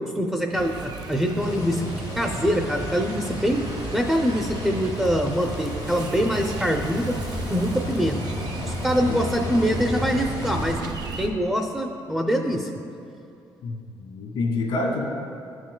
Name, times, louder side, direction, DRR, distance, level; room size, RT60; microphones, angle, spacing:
voice 1, 0.0-1.8 2.2-3.6 3.9-7.1 7.5-8.2 8.7-10.8 11.2-12.7, equal, 5° right, 1 dB, 0.5 m, -24 dB
sound 1, 0.5-11.3, right 4 dB, 60° right, 0.6 m, -34 dB
sound 2, 1.4-10.8, left 3 dB, 50° left, 0.7 m, -34 dB
voice 2, 13.6-15.1, left 3 dB, 85° left, 0 dB, 1.7 m, -28 dB
12.5 x 6.2 x 2.2 m, 2.5 s
cardioid pair, 100°, 8 cm